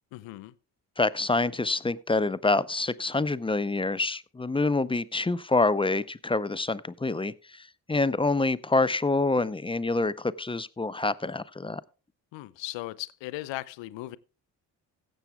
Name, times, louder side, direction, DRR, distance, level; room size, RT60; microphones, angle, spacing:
voice 1, 0.1-0.5 12.3-14.2, left 17 dB, 70° left, 0.7 m, -37 dB
voice 2, 1.0-11.8, left 3 dB, 10° left, 0.5 m, -26 dB
15.5 x 7.0 x 3.5 m
hypercardioid pair, 45°, 46 cm